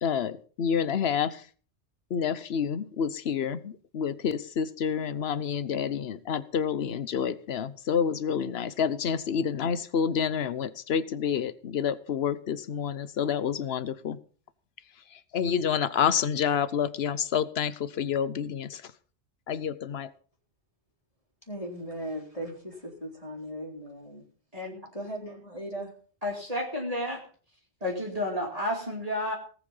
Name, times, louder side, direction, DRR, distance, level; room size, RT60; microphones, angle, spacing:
voice 1, 0.0-1.4 2.1-14.2 15.3-18.8 19.5-20.1, left 7 dB, 65° left, 16 dB, 1.1 m, -28 dB
voice 2, 21.5-24.2 24.9-25.9, right 1 dB, 30° left, 0 dB, 3.6 m, -38 dB
voice 3, 26.2-27.2 27.8-29.3, left 1 dB, 35° right, -1 dB, 2.6 m, -31 dB
18.5 x 8.3 x 5.5 m, 0.42 s
omnidirectional pair, 1.2 m